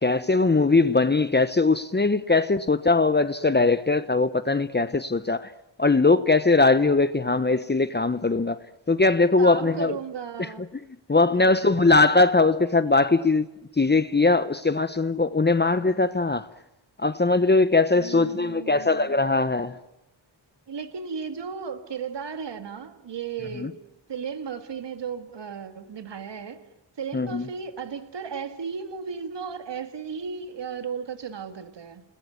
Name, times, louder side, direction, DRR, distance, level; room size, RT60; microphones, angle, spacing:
voice 1, 0.0-5.5 5.8-8.6 8.9-10.0 10.4-10.5 11.1-13.5 13.8-16.5 17.0-19.8 23.6-23.7 27.1-27.5, left 3 dB, 25° left, 1.0 m, -21 dB
voice 2, 9.4-10.7 11.3-11.7 18.0-19.3 20.7-23.8 24.1-26.7 27.0-32.0, right 6 dB, 70° right, 2.1 m, -35 dB
30.0 x 20.5 x 9.4 m
wide cardioid pair, 85°, 44 cm